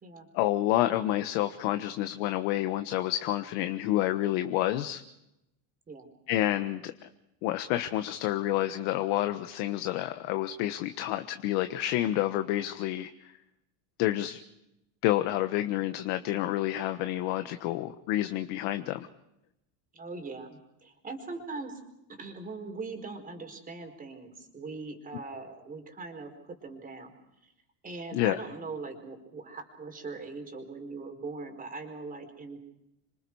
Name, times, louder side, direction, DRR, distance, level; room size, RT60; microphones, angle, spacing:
voice 1, 0.3-5.0 6.3-7.1 7.4-13.1 14.0-14.4 15.0-19.1 28.1-28.4, left 14 dB, 75° left, 8 dB, 1.4 m, -29 dB
voice 2, 19.9-21.8 22.1-27.1 27.4-27.5 27.8-32.6, right 3 dB, 20° right, 4 dB, 4.7 m, -41 dB
28.5 x 25.5 x 4.8 m, 0.86 s
cardioid pair, 155°, 40 cm